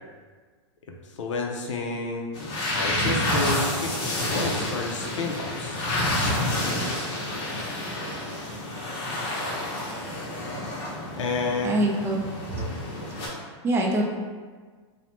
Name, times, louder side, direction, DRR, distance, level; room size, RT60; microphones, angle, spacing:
voice 1, 1.2-2.3 2.7-3.9 4.3-5.9 11.2-11.8 12.6-12.8, left 3 dB, 85° left, 1 dB, 0.4 m, -30 dB
sound 1, 2.3-13.3, left 1 dB, 35° left, 0.7 m, -29 dB
voice 2, 11.6-12.2 13.6-14.0, right 1 dB, 15° right, -1 dB, 0.4 m, -23 dB
2.8 x 2.0 x 3.1 m, 1.5 s
hypercardioid pair, 125°, 15 cm